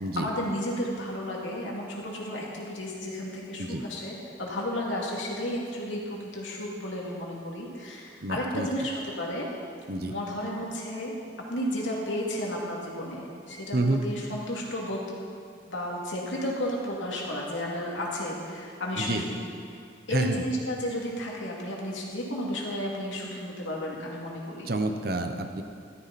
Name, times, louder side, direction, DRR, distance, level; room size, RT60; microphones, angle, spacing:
voice 1, 0.0-9.5 10.1-11.1 11.5-15.2 15.7-19.4 19.7-19.8 20.1-24.7, left 1 dB, 85° left, -3 dB, 2.7 m, -33 dB
voice 2, 8.2-8.7 9.9-10.1 13.7-14.0 19.0-19.2 20.1-20.4 24.6-25.6, right 2 dB, 50° right, 6 dB, 0.9 m, -28 dB
14.0 x 13.5 x 4.3 m, 2.4 s
head